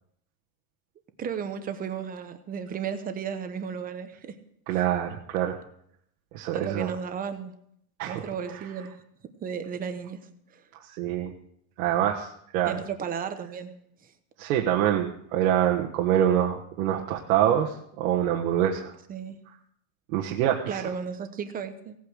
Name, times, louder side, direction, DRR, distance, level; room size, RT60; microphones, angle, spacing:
voice 1, 1.2-4.3 4.7-4.8 6.5-7.5 8.1-8.9 9.4-10.2 10.5-10.6 12.7-13.7 19.1-19.4 20.7-22.0, right 7 dB, 20° right, 9 dB, 0.9 m, -34 dB
voice 2, 4.7-5.6 6.3-6.9 8.0-8.6 10.9-11.3 11.8-12.8 14.4-18.9 20.1-20.8, right 11 dB, 70° right, 0 dB, 1.5 m, -25 dB
17.5 x 8.7 x 6.4 m, 0.72 s
cardioid pair, 170°, 44 cm